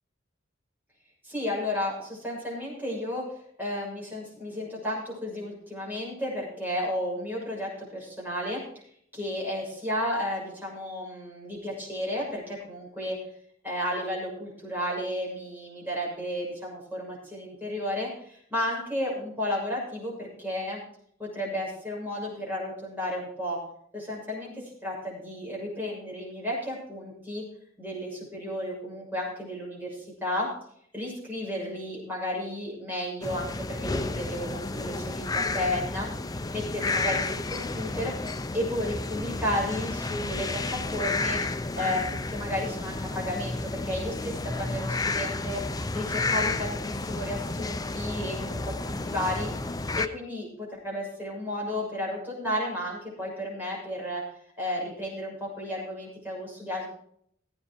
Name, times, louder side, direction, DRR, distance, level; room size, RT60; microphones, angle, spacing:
voice 1, 1.2-3.2 3.6-8.6 9.1-13.2 13.6-20.8 21.2-23.6 23.9-24.5 24.8-27.4 27.8-30.5 30.9-36.1 36.5-38.1 38.5-41.4 41.8-45.6 45.9-49.5 49.8-54.2 54.6-56.9, left 1 dB, 10° right, -4 dB, 6.9 m, -33 dB
sound 1, 33.2-50.1, left 3 dB, 20° left, 0.6 m, -31 dB
16.5 x 9.1 x 4.5 m, 0.65 s
head